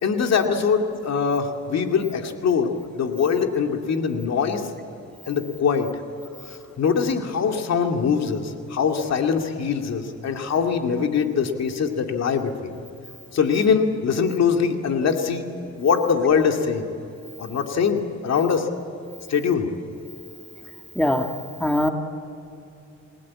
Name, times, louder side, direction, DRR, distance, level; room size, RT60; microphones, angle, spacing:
voice 1, 0.0-4.6 5.3-5.9 6.5-12.7 13.3-15.4 15.8-16.9 17.4-18.7 19.3-19.7, left 6 dB, 60° left, 4 dB, 2.3 m, -22 dB
voice 2, 21.0-21.2 21.6-21.9, left 1 dB, 5° left, 4 dB, 1.9 m, -20 dB
29.0 x 18.0 x 8.5 m, 2.8 s
cardioid pair, 90°, 30 cm